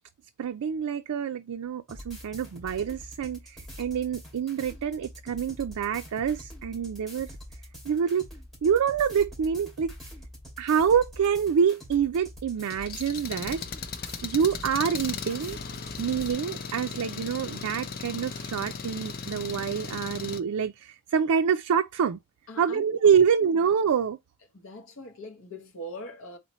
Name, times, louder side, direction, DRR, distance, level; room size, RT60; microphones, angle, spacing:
voice 1, 0.4-7.3 7.9-8.3 8.6-9.9 10.6-13.6 14.2-15.6 16.0-22.2 22.6-24.2, right 7 dB, 85° right, 0.4 m, -26 dB
sound 1, 1.9-16.3, equal, ahead, 2.6 m, -45 dB
Engine, 12.6-20.4, left 5 dB, 40° left, 0.5 m, -37 dB
voice 2, 22.5-23.6 24.5-26.4, equal, 65° left, 1.0 m, -42 dB
4.2 x 4.0 x 3.0 m
head